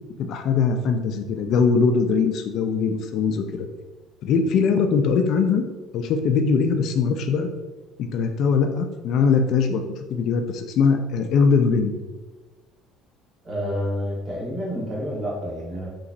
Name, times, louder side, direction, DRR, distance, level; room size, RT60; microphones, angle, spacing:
voice 1, 0.2-3.7 4.2-5.6 5.9-7.5 8.0-9.8 10.1-11.9, left 5 dB, 60° left, 6 dB, 0.3 m, -21 dB
voice 2, 13.4-15.9, equal, 35° right, -5 dB, 1.3 m, -29 dB
3.8 x 3.0 x 2.5 m, 1.2 s
cardioid pair, 135°, 0 cm